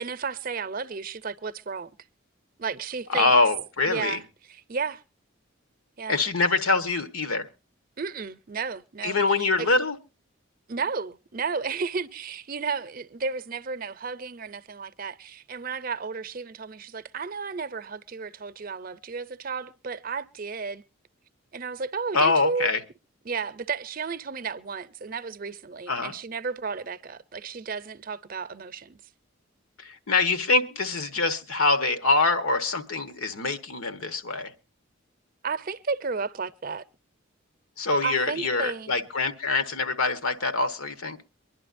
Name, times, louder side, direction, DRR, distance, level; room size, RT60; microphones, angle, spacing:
voice 1, 0.0-1.9 2.6-3.3 3.9-5.0 6.0-6.2 8.0-9.7 10.7-20.8 21.5-22.7 23.2-29.0 35.4-36.8 38.0-38.9, right 5 dB, 40° right, 0.6 m, -33 dB
voice 2, 3.1-4.2 6.1-7.5 9.0-10.0 22.1-22.8 25.9-26.1 29.8-34.5 37.8-41.2, left 3 dB, 90° left, 1.3 m, -24 dB
24.0 x 11.0 x 2.6 m
head